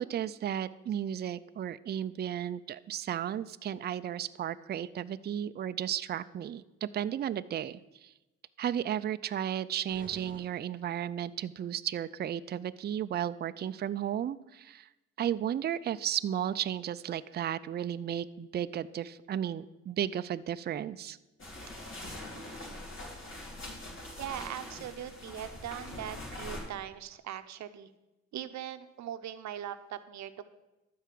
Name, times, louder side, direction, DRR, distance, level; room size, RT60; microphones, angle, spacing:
voice 1, 0.0-8.1 8.6-14.9 15.2-21.2, right 10 dB, 35° right, 13 dB, 0.4 m, -34 dB
sound 1, 9.9-11.4, right 1 dB, 15° right, 3.4 m, -53 dB
sound 2, 21.4-26.6, left 1 dB, 40° left, 3.5 m, -43 dB
voice 2, 24.2-27.9 28.3-30.4, right 10 dB, 65° right, 11 dB, 0.7 m, -40 dB
12.5 x 4.7 x 7.5 m, 0.99 s
cardioid pair, 90°, 30 cm